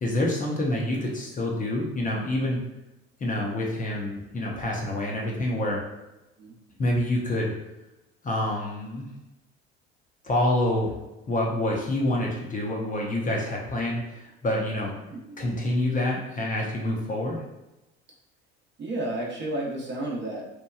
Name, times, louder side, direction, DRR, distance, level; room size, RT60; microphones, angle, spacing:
voice 1, 0.0-2.6 3.2-5.8 6.8-7.5 8.2-9.1 10.2-11.0 11.3-14.9 15.4-17.4, left 1 dB, 25° left, -2 dB, 0.6 m, -27 dB
voice 2, 3.3-3.6 6.4-6.6 14.9-15.6 18.8-20.4, right 1 dB, 35° right, -2 dB, 0.8 m, -33 dB
2.9 x 2.2 x 2.3 m, 0.96 s
hypercardioid pair, 65°, 32 cm